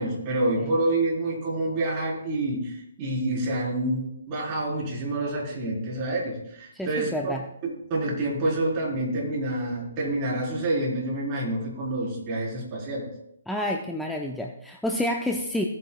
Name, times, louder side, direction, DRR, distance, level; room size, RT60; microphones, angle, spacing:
voice 1, 0.0-7.3 7.6-13.0, right 1 dB, 30° right, -3 dB, 4.7 m, -28 dB
voice 2, 6.7-7.4 13.5-15.6, left 1 dB, ahead, 0 dB, 0.7 m, -29 dB
17.0 x 9.2 x 2.4 m, 0.78 s
hypercardioid pair, 140°, 0 cm